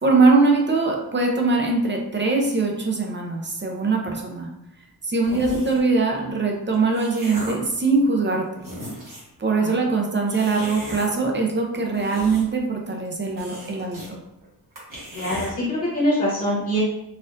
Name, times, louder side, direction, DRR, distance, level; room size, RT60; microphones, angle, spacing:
voice 1, 0.0-4.5 5.0-8.5 9.4-14.2, right 3 dB, 30° right, 1 dB, 0.5 m, -22 dB
sound 1, 5.2-5.9 6.6-7.7 8.3-8.4 8.6-9.4 10.3-11.1 11.8-12.7 13.0-13.1 13.4-14.1 14.4-14.5 14.8-15.5, right 1 dB, 55° right, 1.3 m, -37 dB
voice 2, 15.1-16.8, equal, 35° left, -9 dB, 1.2 m, -24 dB
4.2 x 2.4 x 2.5 m, 0.85 s
wide cardioid pair, 130°, 37 cm